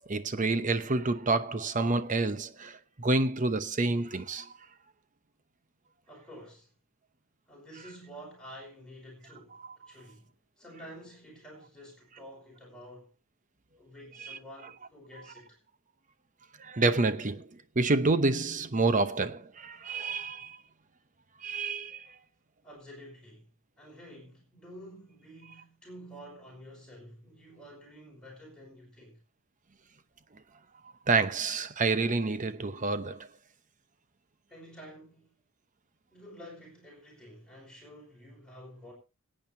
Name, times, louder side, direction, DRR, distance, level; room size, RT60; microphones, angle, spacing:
voice 1, 0.1-4.5 14.2-14.4 16.6-17.5 17.8-20.6 21.4-22.0 31.1-33.3, right 3 dB, 35° right, 0.8 m, -28 dB
voice 2, 6.1-6.7 7.5-13.1 13.8-15.6 22.6-23.5 23.8-29.2 34.5-35.3 36.1-38.9, equal, 5° left, 5.3 m, -50 dB
26.0 x 8.9 x 2.8 m
head